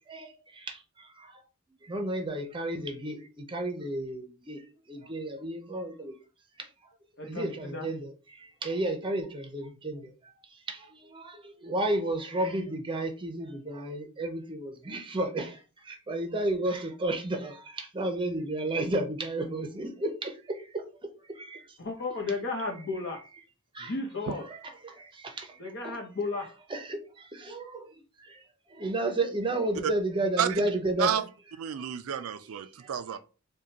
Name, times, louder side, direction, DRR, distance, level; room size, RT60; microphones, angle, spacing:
voice 1, 1.9-3.2 3.5-4.6 4.9-6.1 7.3-8.1 8.6-10.0 11.6-15.5 15.9-17.5 17.9-20.3 23.8-23.9 24.5-24.6 25.4-25.5 25.8-26.0 26.7-27.0 27.4-27.6 28.8-31.1, right 1 dB, 25° right, 0.6 m, -31 dB
voice 2, 7.2-7.9 21.8-23.2 23.8-24.4 25.6-26.5, left 3 dB, 55° left, 1.0 m, -34 dB
voice 3, 31.6-33.2, right 9 dB, 75° right, 0.4 m, -30 dB
4.9 x 2.3 x 2.8 m
head